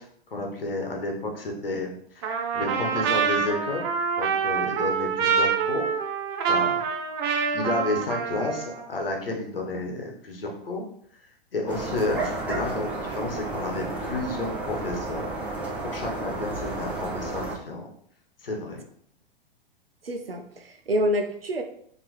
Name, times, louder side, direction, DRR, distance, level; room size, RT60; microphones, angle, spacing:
voice 1, 0.0-3.8 4.2-5.9 6.5-6.8 7.5-10.8 11.5-15.3 15.8-17.9 18.4-18.8, left 2 dB, 70° left, 1 dB, 1.1 m, -31 dB
Trumpet, 2.2-8.8, right 6 dB, 25° right, 0.4 m, -26 dB
sound 1, 11.7-17.6, right 2 dB, 5° right, 0.8 m, -32 dB
voice 2, 20.0-21.6, equal, 80° right, 6 dB, 0.6 m, -27 dB
4.3 x 2.9 x 3.1 m, 0.64 s
figure-of-eight pair, 105°, 29 cm